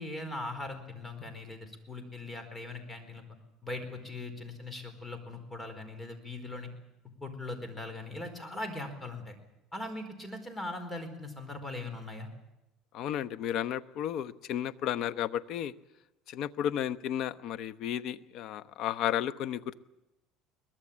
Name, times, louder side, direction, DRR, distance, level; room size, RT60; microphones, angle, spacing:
voice 1, 0.0-3.2 3.6-6.7 7.2-9.3 9.7-12.3, left 2 dB, 15° left, 8 dB, 4.5 m, -40 dB
voice 2, 12.9-15.7 16.3-19.8, left 10 dB, 55° left, 14 dB, 0.9 m, -33 dB
23.0 x 20.5 x 8.7 m, 0.93 s
cardioid pair, 135°, 0 cm